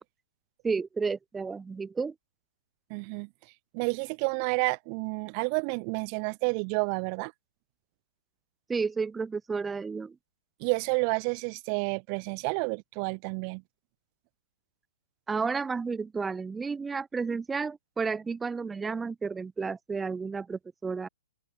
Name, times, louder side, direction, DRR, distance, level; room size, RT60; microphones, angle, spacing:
voice 1, 0.6-2.1 8.7-10.2 15.3-21.1, right 5 dB, 10° right, 6.0 m, -32 dB
voice 2, 2.9-3.3 3.7-7.3 10.6-13.6, right 40 dB or more, 35° right, 7.2 m, -30 dB
open air
hypercardioid pair, 130°, 0 cm